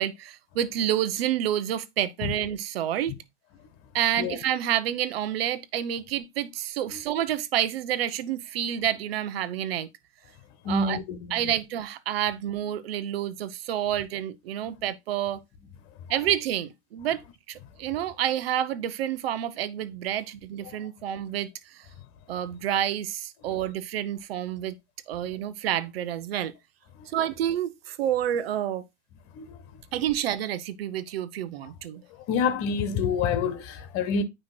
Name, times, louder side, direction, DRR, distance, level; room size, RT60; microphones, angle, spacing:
voice 1, 0.0-3.2 3.9-9.9 10.7-11.0 11.3-15.4 16.1-17.2 17.5-21.8 22.3-24.7 25.1-26.5 27.1-28.8 29.9-32.0, right 11 dB, 60° right, 1.0 m, -29 dB
voice 2, 10.6-11.5 20.6-20.8 23.5-23.6 29.3-29.6 32.3-34.2, left 5 dB, 40° left, 1.5 m, -27 dB
9.4 x 3.4 x 4.4 m
figure-of-eight pair, 90°, 34 cm